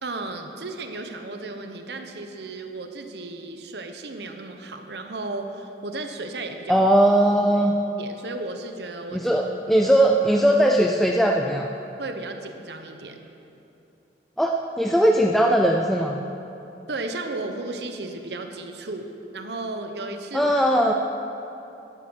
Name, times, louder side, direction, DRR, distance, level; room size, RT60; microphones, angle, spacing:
voice 1, 0.0-6.8 8.0-9.2 12.0-13.2 16.9-20.5, right 2 dB, 70° right, 5 dB, 0.9 m, -34 dB
voice 2, 6.7-7.8 9.1-11.7 14.4-16.2 20.3-20.9, right 1 dB, ahead, 1 dB, 0.4 m, -19 dB
11.5 x 9.5 x 6.3 m, 2.9 s
head